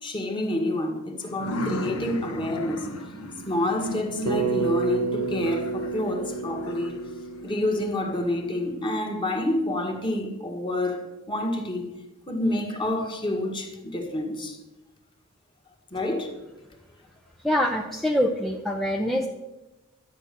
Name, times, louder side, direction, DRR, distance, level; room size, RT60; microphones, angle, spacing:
voice 1, 0.0-2.9 3.4-7.0 7.4-11.9 12.3-14.6 15.9-16.3, left 1 dB, 20° left, 1.7 m, -28 dB
sound 1, 1.2-8.8, equal, 90° left, 1.5 m, -36 dB
Bass guitar, 4.3-8.6, right 5 dB, 85° right, 1.7 m, -30 dB
voice 2, 17.4-19.3, equal, ahead, 0.6 m, -24 dB
12.5 x 8.9 x 6.8 m
head